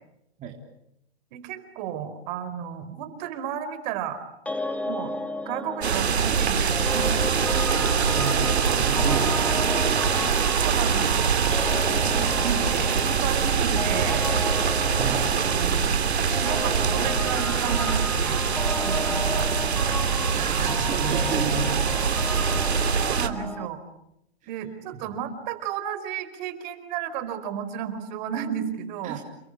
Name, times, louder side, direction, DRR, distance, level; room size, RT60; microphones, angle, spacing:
voice 1, 1.3-4.2 4.9-5.1 5.4-7.3 10.5-11.4 12.0-14.3 15.1-15.2 15.4-15.8 16.4-18.4 18.8-19.5 23.0-23.8 24.5-29.2, right 9 dB, 45° right, 11 dB, 4.6 m, -33 dB
sound 1, 4.5-23.7, left 2 dB, 5° left, 1.8 m, -34 dB
sound 2, 5.8-23.3, right 6 dB, 85° right, 3.0 m, -24 dB
voice 2, 8.0-10.2 15.0-15.3 20.1-22.7 24.4-24.5 29.0-29.2, right 5 dB, 25° right, 2 dB, 3.7 m, -33 dB
30.0 x 22.5 x 8.8 m, 0.80 s
hypercardioid pair, 135°, 32 cm